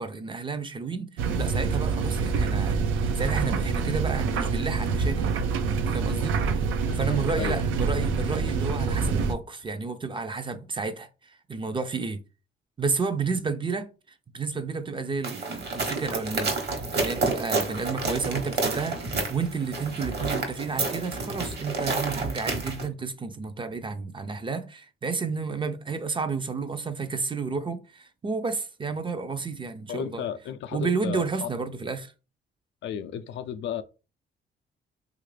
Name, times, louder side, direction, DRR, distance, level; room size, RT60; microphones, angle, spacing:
voice 1, 0.0-5.3 5.8-6.4 6.9-12.2 12.8-13.9 14.3-30.2 30.7-32.1, right 4 dB, 25° right, 0.5 m, -31 dB
sound 1, 1.2-9.3, right 5 dB, 85° right, 0.5 m, -26 dB
voice 2, 6.0-6.4 6.8-7.7 13.3-13.4 29.9-31.5 32.8-33.8, left 9 dB, 70° left, 0.4 m, -34 dB
sound 2, 15.2-22.9, right 3 dB, 55° right, 1.1 m, -30 dB
3.2 x 2.5 x 3.2 m
cardioid pair, 90°, 20 cm